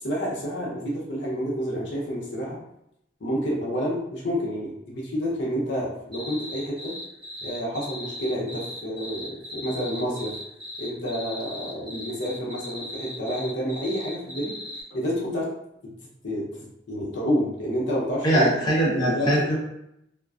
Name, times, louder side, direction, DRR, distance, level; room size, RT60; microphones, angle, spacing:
voice 1, 0.0-2.6 3.2-6.9 7.4-10.4 10.8-14.5 14.9-15.5 16.2-16.4 16.9-18.5 19.0-19.6, equal, 75° left, -4 dB, 0.7 m, -29 dB
sound 1, 6.1-14.8, left 1 dB, 30° right, 0.8 m, -38 dB
voice 2, 18.2-19.6, right 1 dB, 25° left, -6 dB, 0.7 m, -21 dB
2.4 x 2.1 x 2.3 m, 0.79 s
head